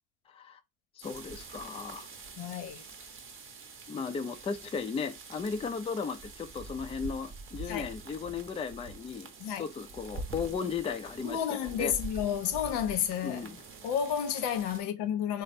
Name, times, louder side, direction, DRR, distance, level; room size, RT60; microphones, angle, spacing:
voice 1, 0.3-0.6 1.0-2.1 3.9-9.3 9.6-11.9 13.2-13.6, left 5 dB, 15° left, 0.4 m, -36 dB
sound 1, 1.0-14.8, right 3 dB, 25° right, 0.9 m, -45 dB
voice 2, 2.4-2.8 7.7-7.9 9.4-9.7 11.2-13.5 13.8-15.4, left 8 dB, 65° left, 0.8 m, -31 dB
3.2 x 2.1 x 4.1 m
hypercardioid pair, 80°, 46 cm